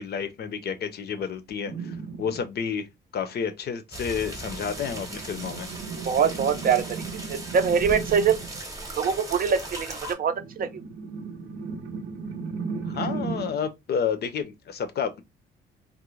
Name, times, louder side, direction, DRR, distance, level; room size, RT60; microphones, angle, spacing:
voice 1, 0.0-2.9 3.1-5.7 12.9-15.2, left 7 dB, 55° left, 0.5 m, -30 dB
sound 1, 1.7-2.4 4.1-8.7 10.2-13.7, right 5 dB, 90° right, 0.7 m, -36 dB
sound 2, 3.9-10.1, right 1 dB, 15° right, 0.8 m, -38 dB
voice 2, 6.1-7.0 7.3-8.3 9.0-10.8, right 6 dB, 45° right, 0.4 m, -24 dB
2.4 x 2.1 x 3.0 m
cardioid pair, 90°, 20 cm